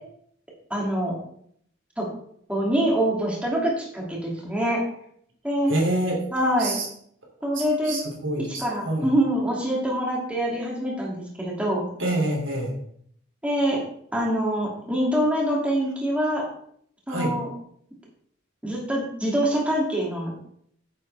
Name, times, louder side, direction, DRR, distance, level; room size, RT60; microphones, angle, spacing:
voice 1, 0.7-1.2 2.0-2.1 2.5-4.8 5.4-5.7 6.3-6.8 7.4-8.0 8.4-11.9 13.4-13.8 14.1-16.4 17.1-17.5 18.6-20.3, right 1 dB, 5° right, -4 dB, 2.6 m, -25 dB
voice 2, 5.7-6.2 6.6-6.9 7.5-9.1 12.0-12.7 17.1-17.3, right 1 dB, 80° right, 0 dB, 2.9 m, -27 dB
10.0 x 8.0 x 3.4 m, 0.67 s
head